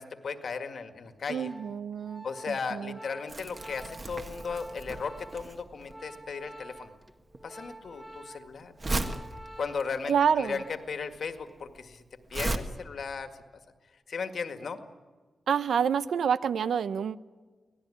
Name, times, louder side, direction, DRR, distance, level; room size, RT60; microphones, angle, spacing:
voice 1, 0.0-1.5 2.2-6.9 7.4-8.7 9.6-12.0 12.3-13.3 14.1-14.8, left 5 dB, 55° left, 8 dB, 1.9 m, -36 dB
Organ, 1.1-11.1 11.3-11.7, right 1 dB, 5° right, 1.4 m, -49 dB
voice 2, 1.3-3.0 10.1-10.6 15.5-17.2, right 7 dB, 80° right, 14 dB, 0.8 m, -28 dB
Crumpling crinkling, 3.3-12.6, right 2 dB, 30° right, 1.5 m, -37 dB
25.0 x 18.0 x 9.9 m, 1.4 s
wide cardioid pair, 165°, 0 cm